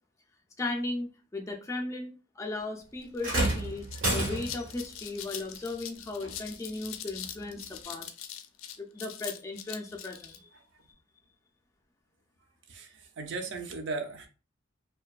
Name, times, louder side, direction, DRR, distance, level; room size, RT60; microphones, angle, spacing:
voice 1, 0.6-2.1 2.4-3.9 4.1-8.1 8.8-10.5, left 2 dB, 15° left, 2 dB, 0.3 m, -36 dB
sound 1, 2.6-2.7 3.0-10.4, left 10 dB, 90° left, 0.4 m, -42 dB
sound 2, 3.2-4.8 6.2-6.4 7.2-7.3, right 1 dB, 90° right, 1.1 m, -30 dB
voice 2, 12.7-14.3, right 3 dB, 60° right, 5 dB, 0.5 m, -37 dB
2.5 x 2.2 x 2.3 m, 0.33 s
head